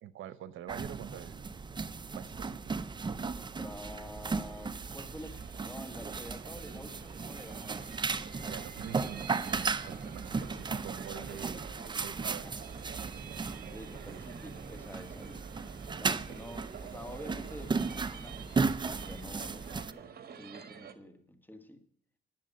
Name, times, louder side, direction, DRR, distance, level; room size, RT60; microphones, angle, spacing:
voice 1, 0.0-1.5 2.1-2.7 8.5-9.6 9.9-12.7 14.1-14.2 16.3-16.4, right 11 dB, 75° right, 16 dB, 0.8 m, -46 dB
sound 1, 0.7-19.9, right 4 dB, 20° right, 0.5 m, -36 dB
voice 2, 3.3-7.8 10.2-10.5 11.1-12.1 12.4-12.5 13.7-15.5 16.0-21.8, left 1 dB, 10° left, 6 dB, 1.7 m, -48 dB
sound 2, 3.7-20.9, right 7 dB, 50° right, 1.2 m, -49 dB
10.5 x 7.5 x 7.5 m, 0.68 s
cardioid pair, 90°, 20 cm